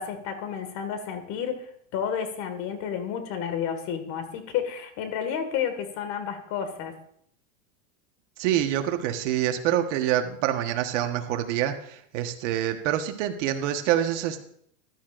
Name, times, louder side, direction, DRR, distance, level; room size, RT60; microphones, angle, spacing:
voice 1, 0.0-6.9, left 8 dB, 45° left, 8 dB, 2.0 m, -31 dB
voice 2, 8.4-14.4, right 11 dB, 60° right, 5 dB, 1.4 m, -26 dB
14.5 x 11.0 x 2.6 m, 0.66 s
supercardioid pair, 135°, 40 cm